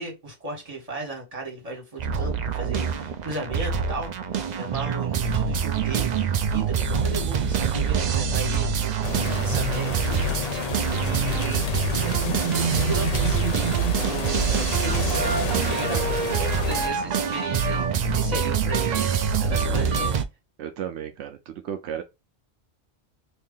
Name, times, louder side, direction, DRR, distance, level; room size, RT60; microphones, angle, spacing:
voice 1, 0.0-12.2 12.6-13.7 14.1-19.1 19.4-20.1, right 2 dB, 35° right, 1.8 m, -35 dB
sound 1, 2.0-20.2, right 6 dB, 55° right, 0.5 m, -25 dB
sound 2, 9.0-16.9, left 5 dB, 40° left, 0.7 m, -31 dB
voice 2, 19.5-20.2 20.6-22.0, right 9 dB, 85° right, 0.9 m, -34 dB
3.1 x 2.7 x 3.7 m
omnidirectional pair, 1.1 m